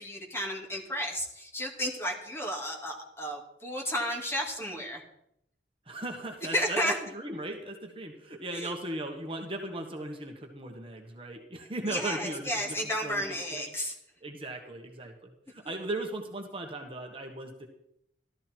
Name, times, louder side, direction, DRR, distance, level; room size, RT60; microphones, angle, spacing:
voice 1, 0.0-5.0 6.4-6.9 8.5-8.7 11.9-13.9, equal, 15° left, 0 dB, 2.4 m, -32 dB
voice 2, 5.9-12.7 13.0-13.2 13.5-13.6 14.2-17.7, right 2 dB, 30° right, 2 dB, 1.4 m, -37 dB
14.5 x 13.0 x 4.5 m, 0.76 s
head